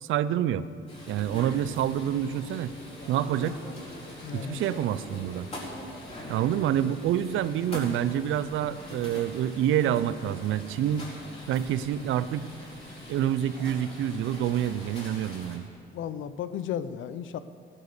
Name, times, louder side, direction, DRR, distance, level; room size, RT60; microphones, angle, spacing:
voice 1, 0.0-0.7 1.1-2.7 3.1-3.6 4.3-5.5 6.3-11.1 11.5-12.5 13.1-15.6, right 10 dB, 80° right, 15 dB, 0.6 m, -27 dB
sound 1, 0.9-15.6, left 1 dB, 30° left, 4.4 m, -43 dB
voice 2, 4.2-4.6 15.9-17.4, left 9 dB, 75° left, 13 dB, 0.7 m, -34 dB
15.0 x 10.0 x 6.8 m, 2.2 s
cardioid pair, 90°, 20 cm